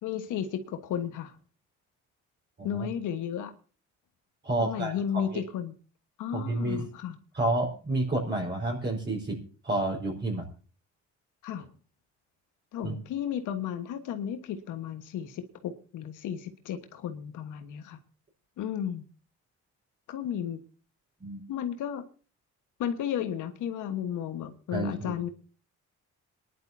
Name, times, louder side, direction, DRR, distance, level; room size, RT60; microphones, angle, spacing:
voice 1, 0.0-1.3 2.6-3.5 4.6-5.7 6.2-7.2 11.4-11.7 12.7-18.0 18.6-19.0 20.1-20.6 21.5-22.0 22.8-25.3, left 9 dB, 85° left, 1.4 m, -33 dB
voice 2, 4.4-5.3 6.3-6.9 7.3-9.4 9.6-10.4 12.8-12.9 21.2-21.4 24.7-25.2, right 2 dB, 35° right, 4.7 m, -30 dB
27.0 x 11.0 x 2.8 m
cardioid pair, 90°, 30 cm